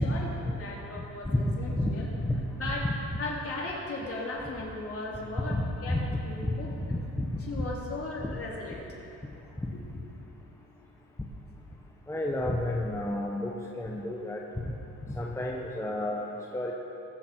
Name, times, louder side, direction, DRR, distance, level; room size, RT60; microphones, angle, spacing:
voice 1, 0.0-2.1 2.5-2.9 3.2-6.7 7.4-8.8 9.7-9.8, left 2 dB, 50° left, -4 dB, 3.4 m, -37 dB
voice 2, 1.3-1.9 2.2-2.4 5.5-6.0 6.4-6.5 6.9-7.3 7.6-7.7 9.6-9.7 12.1-13.5 13.8-14.7 15.1-16.7, left 1 dB, 10° left, -1 dB, 1.1 m, -30 dB
21.0 x 7.2 x 4.5 m, 2.9 s
cardioid pair, 90°, 30 cm